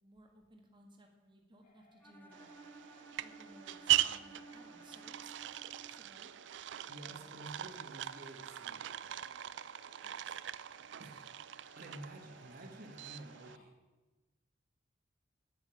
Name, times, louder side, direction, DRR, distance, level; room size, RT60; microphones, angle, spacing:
voice 1, 0.0-2.5 3.2-5.3 5.6-6.3 7.0-7.3 10.0-10.4, right 1 dB, 25° right, 2 dB, 1.6 m, -61 dB
sound 1, 1.6-13.7, left 3 dB, 50° left, 1.9 m, -65 dB
Bowed string instrument, 2.0-6.0, right 2 dB, 10° left, 1.0 m, -55 dB
sound 2, 2.3-13.6, right 13 dB, 70° right, 0.4 m, -40 dB
voice 2, 6.9-9.3 11.0-11.3 11.8-13.7, right 1 dB, 55° right, 3 dB, 1.5 m, -51 dB
9.1 x 7.8 x 8.7 m, 1.2 s
head